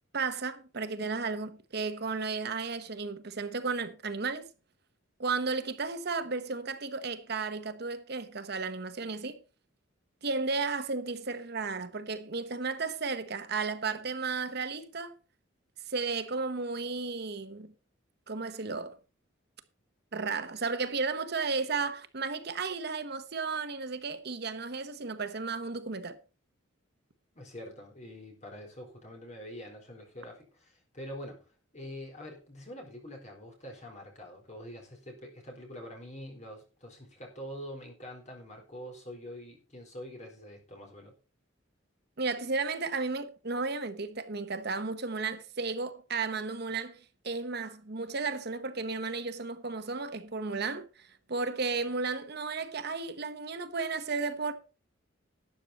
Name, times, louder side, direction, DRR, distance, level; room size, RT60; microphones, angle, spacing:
voice 1, 0.1-4.5 5.2-9.4 10.2-15.1 15.9-17.7 18.3-18.9 20.1-26.2 42.2-47.0 47.2-54.5, right 4 dB, 50° right, 1.0 m, -34 dB
voice 2, 27.4-31.4 31.7-41.1, equal, 35° left, 4.1 m, -45 dB
12.5 x 9.0 x 4.2 m
head